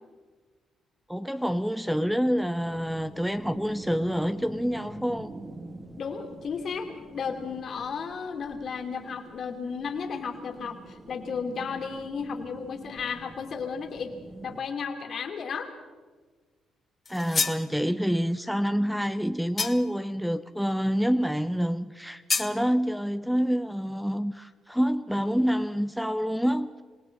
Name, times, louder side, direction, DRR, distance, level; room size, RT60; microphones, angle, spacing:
voice 1, 1.1-5.3 17.1-26.8, equal, ahead, 0.7 m, -27 dB
sound 1, 2.6-14.6, right 2 dB, 25° right, 2.1 m, -47 dB
voice 2, 6.0-14.1 14.4-15.7, left 5 dB, 55° left, 2.9 m, -34 dB
sound 2, 17.1-17.7 19.6-20.0 22.3-22.6, left 4 dB, 35° left, 1.3 m, -28 dB
27.0 x 18.5 x 5.7 m
cardioid pair, 90°, 0 cm